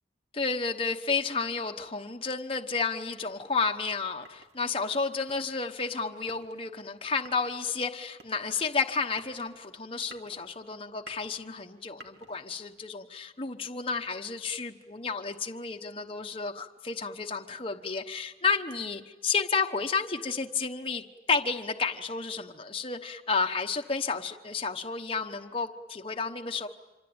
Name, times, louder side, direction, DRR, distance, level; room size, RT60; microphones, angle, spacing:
voice 1, 0.3-26.7, left 4 dB, 30° left, 4 dB, 1.1 m, -31 dB
sound 1, 3.2-12.8, right 2 dB, 65° right, 2.5 m, -55 dB
26.0 x 25.5 x 8.8 m, 1.2 s
head